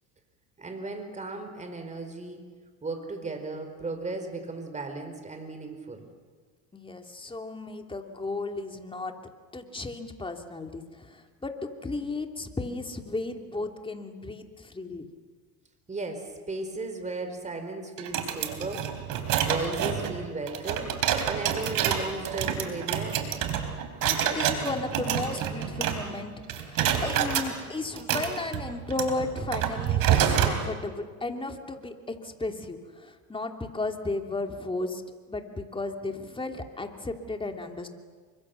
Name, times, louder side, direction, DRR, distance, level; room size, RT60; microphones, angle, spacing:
voice 1, 0.6-2.4 2.8-6.1 15.9-18.9 19.4-20.9 21.2-23.3, right 3 dB, 20° right, 7 dB, 4.4 m, -35 dB
voice 2, 6.7-9.2 9.5-15.1 24.0-35.0 35.3-37.9, left 2 dB, 15° left, 4 dB, 2.8 m, -34 dB
sound 1, 18.0-26.2 26.5-27.5 28.0-30.6, right 9 dB, 60° right, 3.9 m, -28 dB
29.0 x 25.0 x 7.0 m, 1.5 s
supercardioid pair, 105°, 38 cm